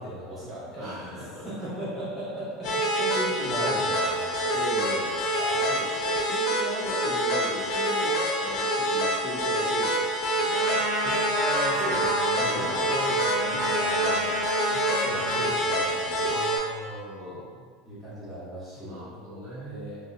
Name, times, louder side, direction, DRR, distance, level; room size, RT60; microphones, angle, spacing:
voice 1, 0.0-4.6 5.4-5.5 11.3-14.3 14.7-16.3 17.8-19.0 19.6-20.0, equal, ahead, -13 dB, 1.0 m, -36 dB
voice 2, 0.7-1.7 3.6-3.9 4.5-5.2 5.5-11.2 12.4-12.9 14.0-14.4 16.3-17.7 18.8-19.8, equal, 55° right, -8 dB, 1.2 m, -38 dB
sound 1, 2.6-16.6, equal, 35° left, 0.5 m, -26 dB
Trumpet, 10.5-15.5, right 1 dB, 75° right, 0.6 m, -30 dB
3.1 x 2.7 x 2.5 m, 1.5 s
supercardioid pair, 180°, 0 cm